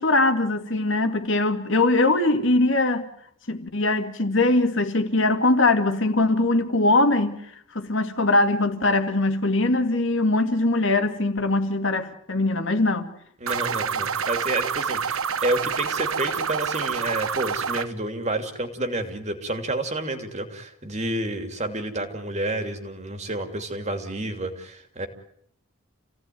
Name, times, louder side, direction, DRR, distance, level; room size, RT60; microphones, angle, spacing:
voice 1, 0.0-3.0 3.5-7.4 7.7-13.1, left 2 dB, 60° left, 2.3 m, -21 dB
voice 2, 13.4-25.1, right 2 dB, 30° right, 2.9 m, -29 dB
sound 1, 13.5-17.9, right 6 dB, 70° right, 1.0 m, -27 dB
29.0 x 17.0 x 9.4 m
head